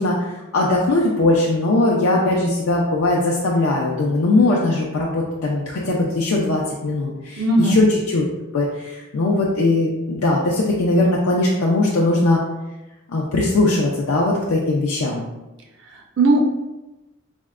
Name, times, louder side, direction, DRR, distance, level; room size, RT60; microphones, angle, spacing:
voice 1, 0.0-8.2 8.5-12.4 13.1-15.2, left 2 dB, 75° left, -3 dB, 0.4 m, -20 dB
voice 2, 7.4-7.8 15.9-16.4, right 2 dB, 55° right, -1 dB, 0.5 m, -18 dB
4.2 x 2.1 x 2.4 m, 1.0 s
head